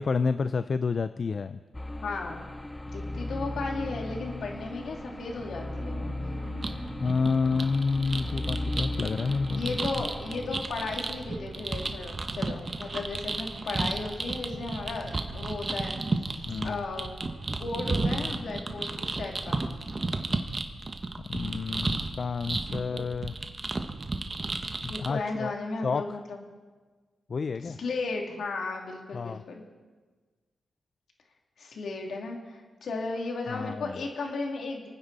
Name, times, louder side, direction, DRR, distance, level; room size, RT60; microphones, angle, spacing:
voice 1, 0.0-1.6 7.0-9.8 16.5-16.8 21.3-23.3 24.8-25.5 25.8-26.0 27.3-27.8 29.1-29.4 33.5-34.0, left 4 dB, 50° left, 12 dB, 0.5 m, -29 dB
sound 1, 1.7-11.3, left 1 dB, 15° left, 0.7 m, -37 dB
voice 2, 2.0-2.4 2.9-6.1 9.3-16.0 16.6-17.1 17.6-19.6 22.9-23.0 24.8-26.4 27.6-29.6 31.6-34.9, left 3 dB, 70° left, 1 dB, 2.8 m, -35 dB
sound 2, 3.9-19.1, right 3 dB, 85° right, 2.1 m, -49 dB
sound 3, 6.6-25.1, right 3 dB, 35° right, 1.4 m, -33 dB
28.0 x 9.7 x 4.2 m, 1.4 s
cardioid pair, 65°, 0 cm